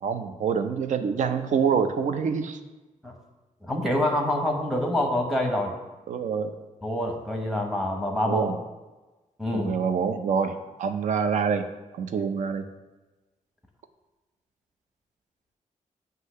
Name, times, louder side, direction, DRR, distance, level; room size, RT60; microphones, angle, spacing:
voice 1, 0.0-2.6 6.1-6.5 8.3-8.6 9.5-11.7 11.9-12.6, right 6 dB, 65° right, 8 dB, 0.5 m, -26 dB
voice 2, 3.6-5.7 6.8-8.5 9.4-9.7, left 1 dB, ahead, 2 dB, 0.9 m, -26 dB
8.1 x 2.7 x 5.5 m, 1.2 s
wide cardioid pair, 155°, 14 cm